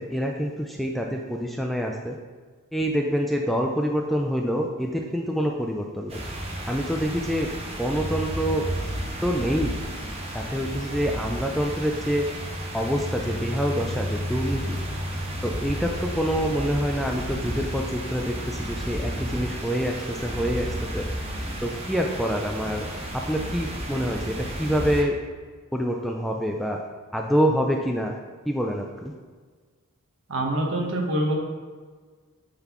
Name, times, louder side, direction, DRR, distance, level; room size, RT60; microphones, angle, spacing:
voice 1, 0.0-2.2 2.7-6.2 6.7-7.5 7.8-8.6 9.2-9.7 10.3-12.3 12.7-14.8 15.4-21.0 21.6-22.9 23.1-25.1 25.7-26.8 27.1-28.1 28.5-29.1, equal, ahead, 1 dB, 0.3 m, -26 dB
sound 1, 6.1-25.0, right 1 dB, 25° right, 1.0 m, -33 dB
sound 2, 11.9-16.6, left 1 dB, 30° left, 0.7 m, -34 dB
voice 2, 30.3-31.3, right 1 dB, 60° right, 0 dB, 1.1 m, -25 dB
8.6 x 4.0 x 3.0 m, 1.5 s
head